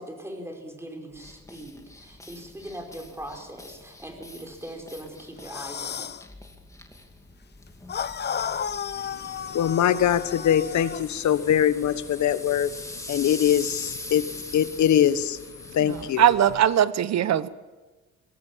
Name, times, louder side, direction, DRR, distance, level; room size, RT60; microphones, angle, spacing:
voice 1, 0.0-6.1, right 1 dB, 10° right, 3 dB, 5.1 m, -40 dB
sound 1, 1.1-16.7, left 2 dB, 10° left, 2.6 m, -43 dB
sound 2, 5.4-6.2 7.9-11.0, left 7 dB, 35° left, 0.7 m, -33 dB
voice 2, 9.0-16.3, left 10 dB, 70° left, 13 dB, 1.2 m, -23 dB
voice 3, 15.8-17.5, right 10 dB, 60° right, 16 dB, 1.0 m, -21 dB
23.0 x 16.5 x 7.4 m, 1.2 s
cardioid pair, 90°, 30 cm